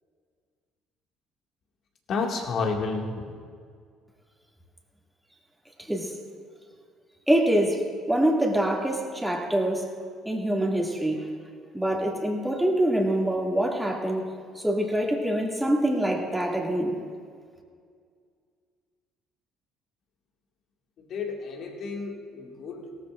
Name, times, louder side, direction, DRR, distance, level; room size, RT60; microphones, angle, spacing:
voice 1, 2.1-3.0 21.1-23.0, left 4 dB, 60° left, 1 dB, 2.1 m, -30 dB
voice 2, 5.8-6.1 7.3-9.8 10.2-11.3 11.7-14.3 14.5-17.1, right 1 dB, 5° right, -1 dB, 2.5 m, -25 dB
17.5 x 13.5 x 2.6 m, 2.1 s
hypercardioid pair, 60°, 0 cm